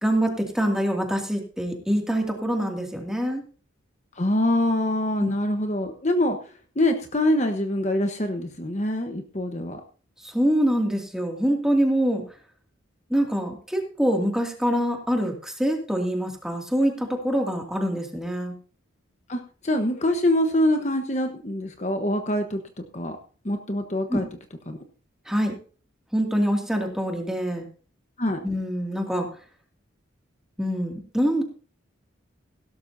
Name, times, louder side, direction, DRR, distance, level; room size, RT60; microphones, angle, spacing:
voice 1, 0.0-3.4 5.2-5.3 10.2-12.2 13.1-18.5 24.1-24.2 25.3-25.6 26.1-27.7 28.4-29.3 30.6-31.4, equal, 5° right, 1 dB, 2.4 m, -25 dB
voice 2, 4.2-9.8 19.3-23.2 23.4-24.3 24.7-24.8 28.2-28.4, left 1 dB, 35° left, 5 dB, 1.2 m, -25 dB
17.0 x 13.0 x 2.8 m, 0.39 s
head